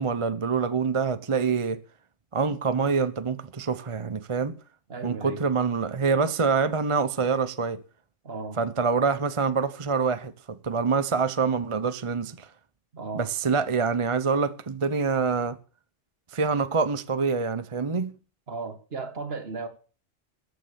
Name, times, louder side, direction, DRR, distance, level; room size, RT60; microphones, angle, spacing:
voice 1, 0.0-1.8 2.3-4.6 5.0-7.8 8.6-12.5 13.1-15.6 16.3-18.2, right 5 dB, 30° right, 0.8 m, -26 dB
voice 2, 4.9-5.4 8.2-8.6 12.9-13.3 18.5-19.7, right 4 dB, 60° right, 2.0 m, -35 dB
14.0 x 9.2 x 6.9 m
omnidirectional pair, 1.2 m